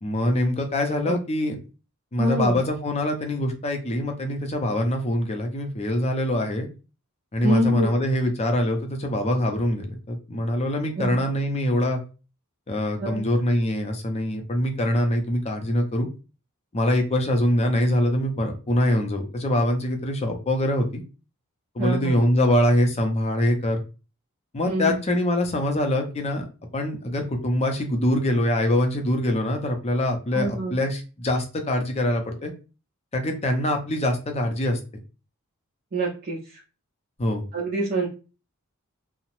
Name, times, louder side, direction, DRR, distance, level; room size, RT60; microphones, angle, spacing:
voice 1, 0.0-1.6 2.1-6.7 7.3-12.0 12.7-16.1 16.7-21.0 21.7-23.8 24.5-26.5 26.7-32.5 33.1-34.8 37.2-37.5, left 1 dB, 30° left, 4 dB, 0.5 m, -24 dB
voice 2, 2.2-2.6 7.4-7.9 11.0-11.2 13.0-13.2 21.8-22.2 24.7-25.0 30.3-30.7 35.9-36.6 37.5-38.1, right 1 dB, 40° right, -3 dB, 0.5 m, -25 dB
2.7 x 2.0 x 2.9 m, 0.32 s
head